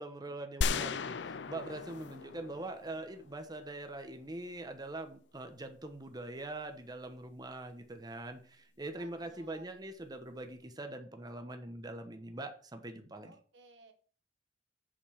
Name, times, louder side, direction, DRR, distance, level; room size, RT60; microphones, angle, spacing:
voice 1, 0.0-13.3, right 2 dB, 25° right, 6 dB, 1.1 m, -43 dB
sound 1, 0.6-3.5, left 4 dB, 80° left, 0.5 m, -36 dB
voice 2, 8.9-9.7 13.2-13.9, right 3 dB, 90° right, 7 dB, 1.5 m, -58 dB
7.4 x 5.4 x 5.7 m, 0.43 s
head